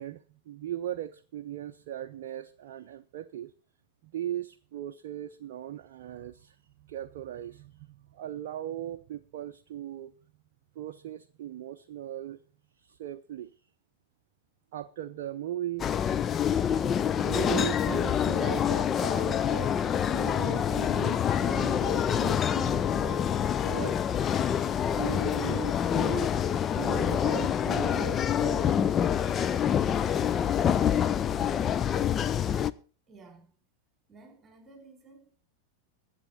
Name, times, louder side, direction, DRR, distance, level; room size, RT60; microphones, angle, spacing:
voice 1, 0.0-3.5 4.0-10.1 10.7-12.4 12.8-13.5 14.7-15.9 17.2-23.2 23.6-24.0 24.8-26.4 26.8-28.8, right 11 dB, 50° right, 0.6 m, -38 dB
sound 1, 15.8-32.7, left 9 dB, 25° left, 0.5 m, -26 dB
voice 2, 33.1-33.6 34.1-35.5, right 3 dB, 15° right, 4.5 m, -54 dB
21.5 x 7.6 x 4.0 m
figure-of-eight pair, 90°, 0 cm